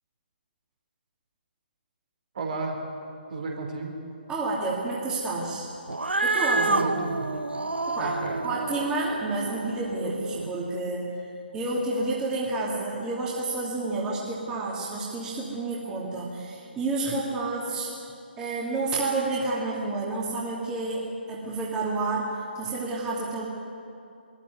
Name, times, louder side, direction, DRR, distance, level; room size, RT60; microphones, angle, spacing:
voice 1, 2.3-2.9 3.3-4.0 6.5-7.3 8.0-8.4, right 3 dB, 50° right, 2 dB, 3.6 m, -33 dB
voice 2, 4.3-5.7 6.2-6.9 7.9-11.1 11.5-17.9 18.4-23.5, right 2 dB, 15° right, -4 dB, 2.7 m, -30 dB
Cat, 5.9-10.5, right 2 dB, 80° right, 1.0 m, -29 dB
22.0 x 14.0 x 9.4 m, 2.5 s
figure-of-eight pair, 140°, 6 cm